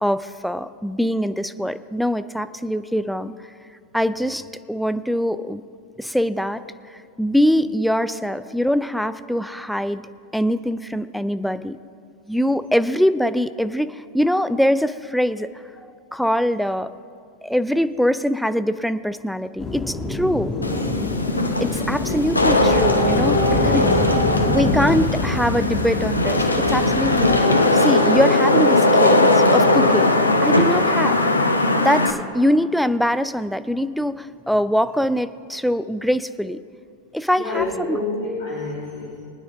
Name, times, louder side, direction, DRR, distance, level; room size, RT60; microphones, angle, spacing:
voice 1, 0.0-3.3 3.9-5.6 6.0-6.6 6.9-10.0 10.3-11.8 12.3-15.5 16.1-16.9 17.4-20.5 21.6-23.9 24.5-30.1 30.4-31.2 31.8-36.6 37.1-38.0, equal, ahead, 12 dB, 0.4 m, -23 dB
sound 1, 19.6-27.4, left 2 dB, 20° left, 1.5 m, -27 dB
Wind / Rain, 20.6-32.1, left 2 dB, 80° left, 0.8 m, -18 dB
voice 2, 37.4-39.2, left 3 dB, 60° left, -5 dB, 2.4 m, -29 dB
23.0 x 9.6 x 3.5 m, 2.3 s
figure-of-eight pair, 90°, 0 cm